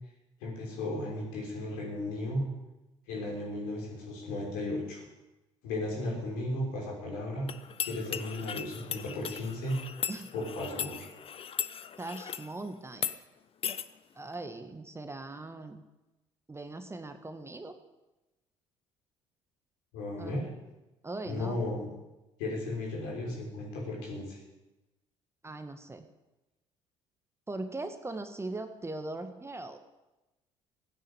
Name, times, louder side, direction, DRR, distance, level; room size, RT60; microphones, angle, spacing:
voice 1, 0.4-2.5 3.1-5.0 5.6-7.5 7.8-9.8 10.3-11.1 19.9-20.4 21.3-21.9 22.4-24.4, left 1 dB, 65° left, -2 dB, 6.1 m, -35 dB
sound 1, 7.5-12.5 12.9-13.2 13.6-13.9, left 8 dB, 40° left, 0.9 m, -37 dB
voice 2, 12.0-13.1 14.2-15.8 16.5-17.8 20.2-20.5 21.0-21.6 25.4-26.1 27.5-29.8, right 2 dB, 15° right, 8 dB, 1.6 m, -40 dB
16.0 x 10.0 x 8.3 m, 1.0 s
figure-of-eight pair, 55°, 15 cm